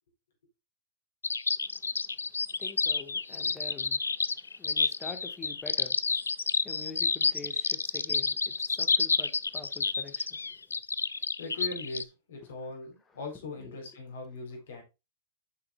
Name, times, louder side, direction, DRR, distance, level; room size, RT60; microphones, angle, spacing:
sound 1, 1.2-12.0, left 4 dB, 85° left, 0.4 m, -29 dB
voice 1, 1.7-2.1 2.6-6.0 6.6-10.5 12.4-12.5 13.6-13.8, left 3 dB, 15° left, 1.7 m, -46 dB
voice 2, 11.1-14.8, left 3 dB, 70° left, 3.8 m, -40 dB
7.6 x 6.0 x 2.5 m
hypercardioid pair, 105°, 0 cm